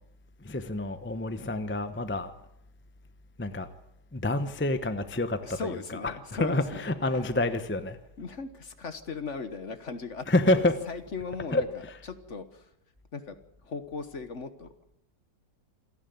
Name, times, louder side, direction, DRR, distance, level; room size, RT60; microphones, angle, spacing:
voice 1, 0.4-2.3 3.4-3.7 4.1-6.1 6.4-8.0 10.3-10.8 11.5-11.6, left 2 dB, 10° left, 10 dB, 0.7 m, -28 dB
voice 2, 5.4-7.3 8.2-10.3 10.5-12.7 13.1-13.3 13.6-14.7, left 4 dB, 45° left, 10 dB, 1.5 m, -38 dB
27.5 x 11.0 x 9.4 m, 0.81 s
omnidirectional pair, 1.9 m